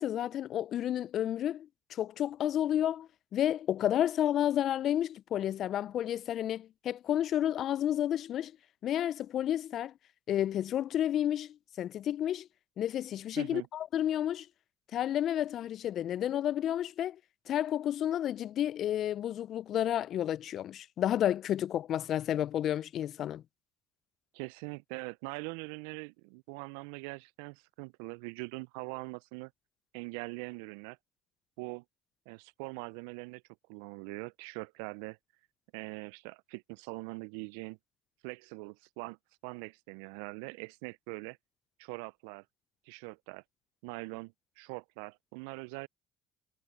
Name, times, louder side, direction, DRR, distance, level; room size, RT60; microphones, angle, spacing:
voice 1, 0.0-8.5 8.8-9.9 10.3-12.5 12.8-14.5 14.9-17.2 17.5-23.4, left 11 dB, 55° left, 0.6 m, -31 dB
voice 2, 13.4-13.7 24.3-29.5 29.9-31.0 31.6-31.8 32.3-33.4 33.7-35.2 35.7-37.8 38.2-39.2 39.4-41.4 41.8-42.4 42.9-43.4 43.8-45.9, right 30 dB, 75° right, 0.4 m, -42 dB
hypercardioid pair, 60°, 0 cm